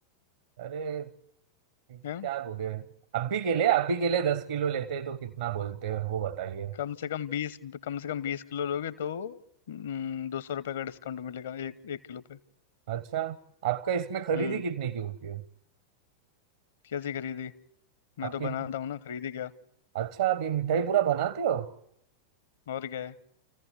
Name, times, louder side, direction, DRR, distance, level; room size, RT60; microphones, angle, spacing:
voice 1, 0.6-1.1 1.9-2.8 3.1-6.7 12.9-13.4 13.6-15.4 18.2-18.5 19.9-21.7, right 8 dB, 60° right, 1.0 m, -29 dB
voice 2, 6.7-9.4 9.7-12.4 14.3-14.6 16.8-17.5 18.2-19.5 22.7-23.2, left 9 dB, 60° left, 1.0 m, -35 dB
28.5 x 15.0 x 8.1 m
figure-of-eight pair, 90°, 0 cm